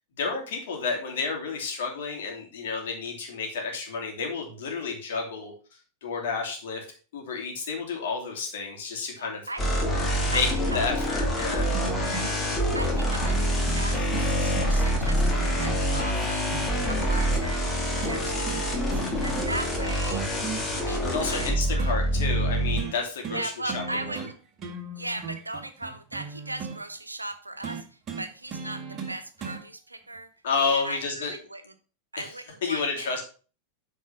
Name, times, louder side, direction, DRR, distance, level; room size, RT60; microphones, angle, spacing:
voice 1, 0.2-5.5 6.0-6.8 7.1-9.4 10.2-10.5 10.7-11.7 21.0-24.3 30.4-31.3 32.2-32.3 32.6-33.2, left 4 dB, 55° left, 1 dB, 2.9 m, -30 dB
voice 2, 9.2-9.9 10.3-10.4 10.7-10.8 12.0-12.4 12.7-13.4 13.7-16.5 16.9-18.9 19.2-20.2 20.8-22.0 23.3-24.3 25.0-27.8 28.2-30.3 30.7-31.6 32.1-33.1, right 2 dB, 85° right, 9 dB, 0.9 m, -38 dB
sound 1, 9.6-22.8, equal, 20° left, 2.5 m, -26 dB
sound 2, 11.7-12.4 13.2-13.4 13.7-13.8 14.1-17.2 18.0-18.6 18.9-19.7 20.1-22.0 22.8-23.0 23.2-23.4 23.7-24.3 24.6-26.8 27.6-29.6 30.6-30.7, right 5 dB, 30° right, 1.7 m, -37 dB
8.5 x 4.7 x 5.7 m, 0.37 s
figure-of-eight pair, 90°, 0 cm